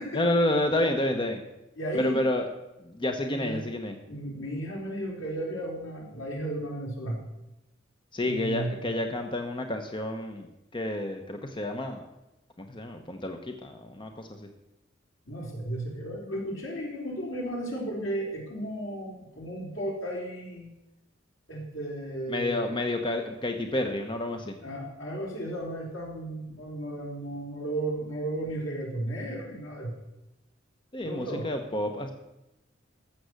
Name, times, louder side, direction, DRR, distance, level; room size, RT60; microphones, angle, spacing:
voice 1, 0.1-1.4 1.9-2.5 2.8-3.9 8.1-10.5 10.7-12.1 12.6-14.5 22.3-24.5 30.9-32.1, left 1 dB, 25° left, 5 dB, 0.9 m, -29 dB
voice 2, 1.8-2.2 3.3-3.6 4.1-7.3 8.2-8.7 15.3-20.7 21.5-22.6 24.6-29.9 31.0-31.4, right 1 dB, 75° left, -2 dB, 4.1 m, -34 dB
14.5 x 6.9 x 6.5 m, 0.94 s
head